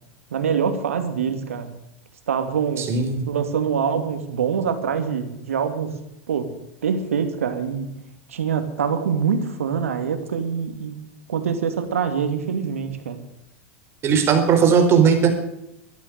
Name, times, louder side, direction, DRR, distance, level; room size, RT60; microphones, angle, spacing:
voice 1, 0.3-1.7 2.3-2.9 3.3-5.9 6.3-6.5 6.8-7.9 8.3-11.0 11.3-13.2, right 7 dB, 80° right, 8 dB, 2.5 m, -24 dB
voice 2, 2.8-3.2 14.0-15.3, right 6 dB, 35° right, 5 dB, 4.1 m, -17 dB
13.0 x 11.5 x 9.1 m, 0.83 s
hypercardioid pair, 100°, 7 cm